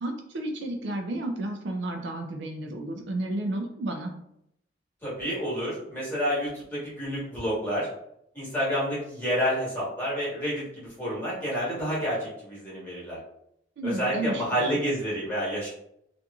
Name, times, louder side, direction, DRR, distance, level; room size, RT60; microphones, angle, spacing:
voice 1, 0.0-4.1 13.8-14.8, right 2 dB, 70° right, 4 dB, 0.4 m, -32 dB
voice 2, 5.0-7.9 8.3-13.2 13.8-15.7, equal, 10° left, -8 dB, 1.4 m, -29 dB
2.8 x 2.5 x 2.3 m, 0.75 s
head